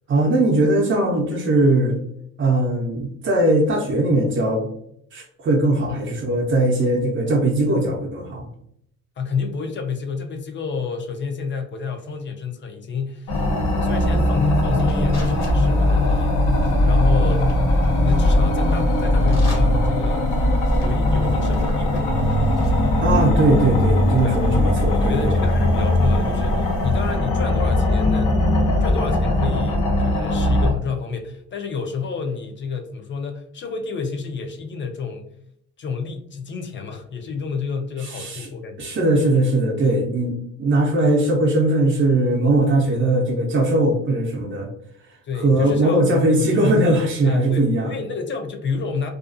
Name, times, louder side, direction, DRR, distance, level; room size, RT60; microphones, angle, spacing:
voice 1, 0.1-2.0 2.4-4.7 5.1-8.5 23.0-25.3 38.0-38.5 38.8-40.3 40.6-44.7 45.3-47.9, right 1 dB, 40° right, -2 dB, 0.6 m, -19 dB
voice 2, 5.9-6.2 9.2-13.4 13.8-16.5 16.8-17.5 17.9-20.4 20.8-22.2 24.2-24.4 24.9-28.4 28.8-35.3 35.8-38.9 42.8-43.0 45.2-46.7 47.2-49.1, left 5 dB, 40° left, 5 dB, 0.5 m, -30 dB
sound 1, 13.3-30.7, left 1 dB, 90° left, 0.8 m, -19 dB
sound 2, 13.3-27.2, equal, 60° left, 1.0 m, -40 dB
2.4 x 2.2 x 2.5 m, 0.70 s
cardioid pair, 90°, 30 cm